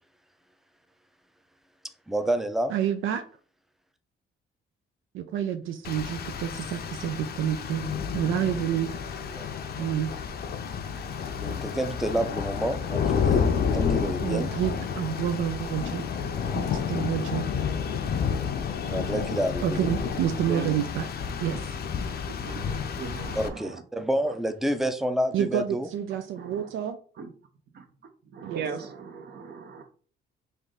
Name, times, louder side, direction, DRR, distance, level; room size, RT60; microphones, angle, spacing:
voice 1, 2.1-2.7 9.3-9.4 11.2-14.5 18.9-19.8 23.4-25.9, right 1 dB, ahead, 9 dB, 0.5 m, -29 dB
voice 2, 2.7-3.2 5.1-8.9 9.8-10.1 14.2-16.3 16.5-17.5 19.6-21.1 21.4-21.6 25.3-27.0 28.4-28.6, right 10 dB, 80° right, 8 dB, 0.4 m, -29 dB
Rain, 5.8-23.5, left 6 dB, 50° left, 0.5 m, -30 dB
voice 3, 20.4-21.0 21.4-21.6 22.4-23.8 24.3-24.4 26.4-26.7 27.2-27.3 27.7-27.8 28.2-29.9, right 6 dB, 55° right, 7 dB, 0.8 m, -38 dB
3.4 x 2.5 x 3.9 m, 0.42 s
cardioid pair, 90°, 20 cm